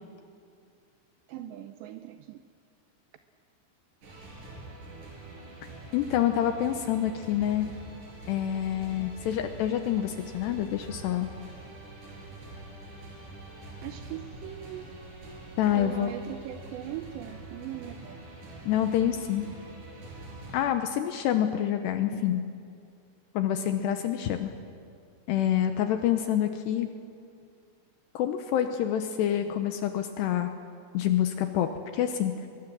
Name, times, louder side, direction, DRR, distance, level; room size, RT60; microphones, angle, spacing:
voice 1, 1.3-2.4 13.8-14.9 15.7-18.3, right 12 dB, 80° right, 9 dB, 2.6 m, -40 dB
sound 1, 4.0-20.6, right 2 dB, 40° right, 5.9 m, -45 dB
voice 2, 5.9-7.7 8.3-11.3 15.6-16.1 18.7-19.5 20.5-22.4 23.3-24.5 25.3-26.9 28.1-30.5 30.9-31.7 31.9-32.5, left 10 dB, 80° left, 7 dB, 2.6 m, -27 dB
23.0 x 21.5 x 7.5 m, 2.4 s
omnidirectional pair, 5.7 m